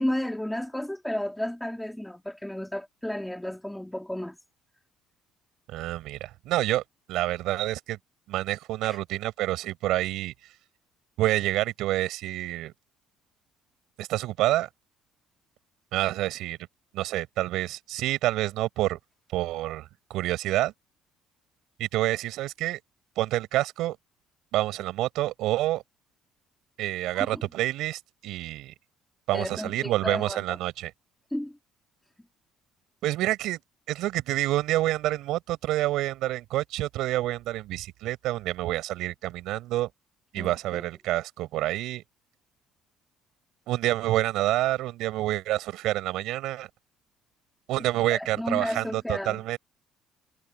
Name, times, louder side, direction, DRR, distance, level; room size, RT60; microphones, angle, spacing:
voice 1, 0.0-4.4 8.8-9.0 27.2-27.4 29.3-30.6 31.3-31.6 40.4-40.9 48.1-49.4, left 1 dB, 5° left, 2.3 m, -33 dB
voice 2, 5.7-6.8 7.1-8.0 8.3-10.3 11.2-12.7 14.0-14.7 15.9-16.6 16.9-19.0 19.3-20.7 21.8-22.8 23.2-24.0 24.5-25.8 26.8-28.7 29.3-30.9 33.0-33.6 33.9-39.9 40.3-42.0 43.7-46.7 47.7-49.6, right 15 dB, 70° right, 5.0 m, -28 dB
cardioid pair, 150°, 0 cm